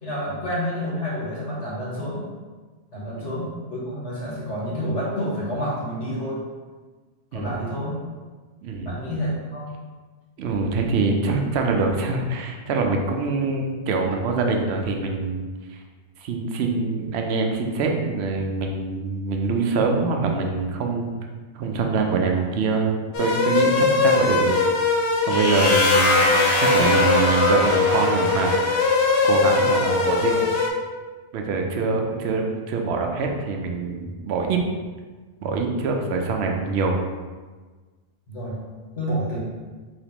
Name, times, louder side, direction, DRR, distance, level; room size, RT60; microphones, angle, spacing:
voice 1, 0.0-2.2 2.9-6.4 7.3-8.0 8.8-9.7 38.3-38.6 38.9-39.4, equal, 85° left, -8 dB, 1.6 m, -29 dB
voice 2, 8.6-8.9 10.4-15.8 16.2-21.1 21.5-24.6 25.3-28.6 29.2-30.5 31.3-34.6 35.4-37.0, right 4 dB, 70° right, 2 dB, 0.8 m, -24 dB
sound 1, 23.1-30.7, left 3 dB, 65° left, 0.8 m, -21 dB
sound 2, 25.3-29.1, left 2 dB, 40° left, 0.4 m, -24 dB
5.1 x 2.9 x 2.9 m, 1.4 s
omnidirectional pair, 1.2 m